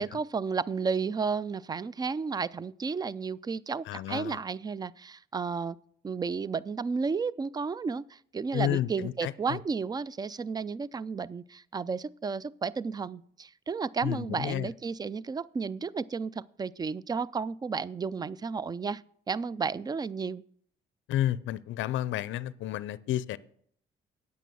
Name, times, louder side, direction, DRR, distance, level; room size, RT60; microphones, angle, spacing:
voice 1, 0.0-5.8 6.0-19.0 19.3-20.4, right 5 dB, 20° right, 0.3 m, -32 dB
voice 2, 3.9-4.4 8.5-9.6 14.0-14.7 21.1-23.4, left 13 dB, 75° left, 0.5 m, -31 dB
9.1 x 8.3 x 6.1 m
cardioid pair, 90°, 20 cm